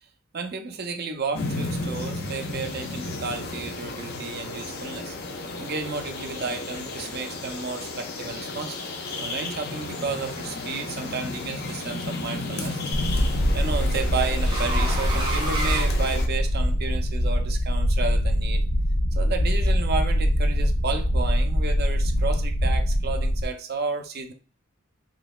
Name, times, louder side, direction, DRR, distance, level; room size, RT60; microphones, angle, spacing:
voice 1, 0.3-5.2 5.6-8.9 9.2-18.6 19.2-24.3, right 4 dB, 50° right, 6 dB, 0.6 m, -32 dB
sound 1, 1.3-16.3, left 2 dB, 50° left, 0.7 m, -33 dB
sound 2, 10.8-11.3 12.7-16.7, right 2 dB, 25° right, 0.8 m, -33 dB
sound 3, 12.9-23.4, equal, 85° left, 0.7 m, -23 dB
3.8 x 3.1 x 2.2 m, 0.36 s
head